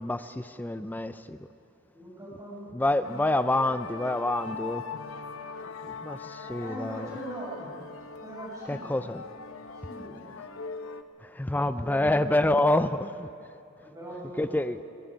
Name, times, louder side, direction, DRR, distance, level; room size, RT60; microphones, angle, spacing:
voice 1, 0.0-1.4 2.7-4.8 6.0-7.2 8.7-9.2 11.2-13.3 14.4-14.8, left 1 dB, 10° left, 12 dB, 0.4 m, -27 dB
voice 2, 1.9-2.7 5.5-5.7 6.4-7.7 8.2-8.9 9.8-10.2 11.7-12.6 13.8-14.9, equal, 15° right, -5 dB, 7.1 m, -41 dB
sound 1, 3.0-11.0, left 5 dB, 65° left, 0.9 m, -41 dB
23.5 x 22.5 x 5.1 m, 2.6 s
head